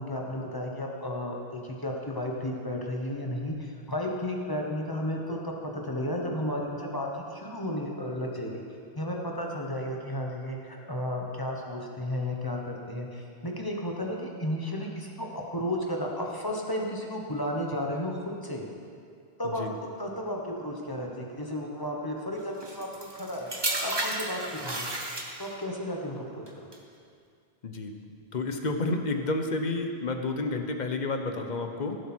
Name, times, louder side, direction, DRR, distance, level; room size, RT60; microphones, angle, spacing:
voice 1, 0.0-8.6 8.9-12.6 12.9-18.6 19.4-23.5 23.8-24.9 25.4-26.7, left 1 dB, 20° left, -1 dB, 1.2 m, -33 dB
sound 1, 22.6-25.7 26.5-26.8, right 1 dB, 25° right, 1.1 m, -33 dB
voice 2, 27.6-27.9 28.3-32.0, left 2 dB, 45° left, 5 dB, 0.9 m, -30 dB
16.0 x 7.5 x 4.5 m, 2.3 s
omnidirectional pair, 1.1 m